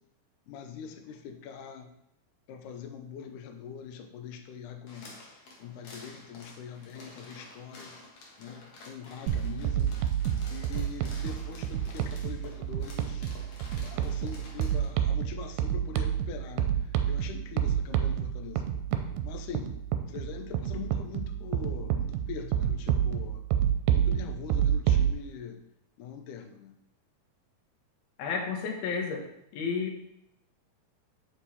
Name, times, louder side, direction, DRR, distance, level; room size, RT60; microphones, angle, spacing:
voice 1, 0.5-1.9 2.5-5.2 5.6-8.0 8.4-10.0 10.5-13.3 13.8-18.7 19.2-19.7 20.1-23.4 23.9-25.6 26.0-26.8, left 7 dB, 75° left, 6 dB, 2.1 m, -43 dB
sound 1, 4.9-14.9, left 2 dB, 50° left, 2.2 m, -50 dB
sound 2, 9.3-25.1, right 10 dB, 80° right, 2.4 m, -29 dB
voice 2, 28.2-29.2 29.5-30.0, left 5 dB, 90° left, 2 dB, 3.2 m, -31 dB
7.7 x 7.1 x 4.2 m, 0.76 s
omnidirectional pair, 4.2 m